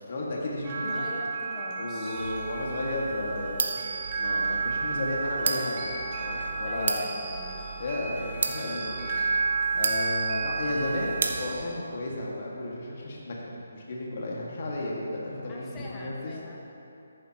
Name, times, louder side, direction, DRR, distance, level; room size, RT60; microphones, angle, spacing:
voice 1, 0.1-1.0 1.8-3.8 4.2-5.9 6.2-7.0 7.8-9.1 9.7-13.4 13.7-16.3, left 2 dB, 50° left, -3 dB, 2.0 m, -33 dB
sound 1, 0.6-11.5, right 4 dB, 30° right, 1.6 m, -32 dB
voice 2, 0.8-2.4 6.7-7.7 15.5-16.6, left 1 dB, 20° left, -3 dB, 1.3 m, -42 dB
sound 2, 2.1-11.7, right 4 dB, 60° right, 0.9 m, -35 dB
14.0 x 10.5 x 3.0 m, 3.0 s
figure-of-eight pair, 150°, 0 cm